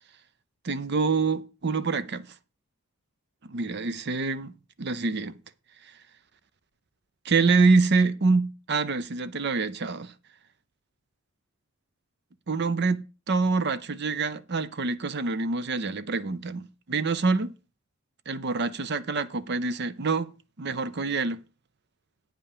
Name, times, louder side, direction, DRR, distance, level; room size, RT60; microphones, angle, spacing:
voice 1, 0.6-2.2 3.5-4.5 4.8-5.4 7.2-10.1 12.5-17.5 18.3-20.3 20.6-21.4, right 4 dB, 50° right, 0.6 m, -26 dB
8.9 x 5.6 x 6.7 m
head